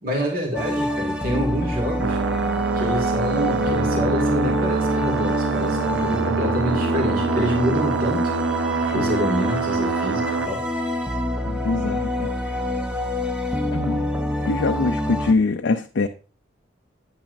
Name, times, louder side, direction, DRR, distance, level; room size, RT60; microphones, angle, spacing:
voice 1, 0.0-2.2 2.8-8.3 8.9-10.6, right 1 dB, 45° right, 2.1 m, -27 dB
sound 1, 0.5-15.3, left 1 dB, 5° right, 0.7 m, -26 dB
sound 2, 2.0-10.5, right 6 dB, 80° right, 0.4 m, -26 dB
voice 2, 11.5-12.3 13.7-14.1 14.5-16.1, left 3 dB, 70° left, 0.5 m, -23 dB
9.7 x 8.8 x 2.5 m
head